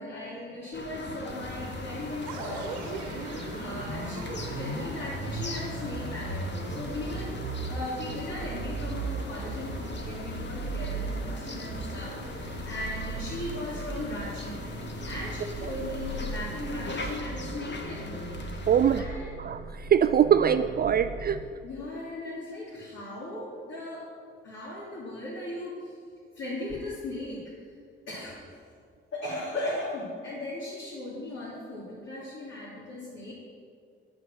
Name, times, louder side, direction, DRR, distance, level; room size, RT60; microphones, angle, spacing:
voice 1, 0.0-14.6 15.0-18.7 18.9-19.7 20.3-20.4 21.6-24.1 24.4-26.0 26.3-27.4 28.1-28.5 29.1-33.3, left 1 dB, 55° left, -8 dB, 2.9 m, -38 dB
sound 1, 0.7-19.0, left 2 dB, 35° left, 1.5 m, -40 dB
sound 2, 1.3-17.2, left 3 dB, 75° left, 1.2 m, -48 dB
sound 3, 2.3-21.5, right 4 dB, 70° right, 1.1 m, -38 dB
voice 2, 18.7-19.0 19.4-21.4, right 8 dB, 30° right, 11 dB, 0.4 m, -23 dB
9.8 x 6.9 x 6.2 m, 2.2 s
figure-of-eight pair, 45°, 30 cm